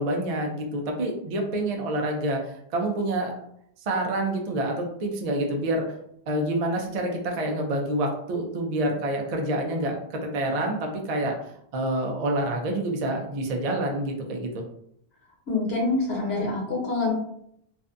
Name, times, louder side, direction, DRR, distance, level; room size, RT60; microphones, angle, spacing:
voice 1, 0.0-3.4 3.8-5.9 6.3-14.6, right 1 dB, 55° right, 2 dB, 0.4 m, -27 dB
voice 2, 15.5-17.1, left 3 dB, 75° left, -3 dB, 1.2 m, -26 dB
2.5 x 2.2 x 2.4 m, 0.73 s
omnidirectional pair, 1.1 m